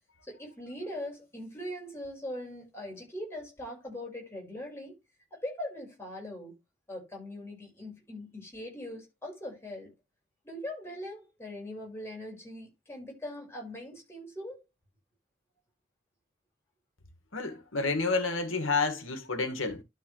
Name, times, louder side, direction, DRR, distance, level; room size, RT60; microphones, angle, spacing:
voice 1, 0.2-4.9 5.3-6.5 6.9-9.9 10.4-14.6, left 1 dB, 15° left, 5.6 m, -41 dB
voice 2, 17.3-19.8, left 3 dB, 90° left, 2.0 m, -30 dB
12.0 x 5.1 x 3.3 m
head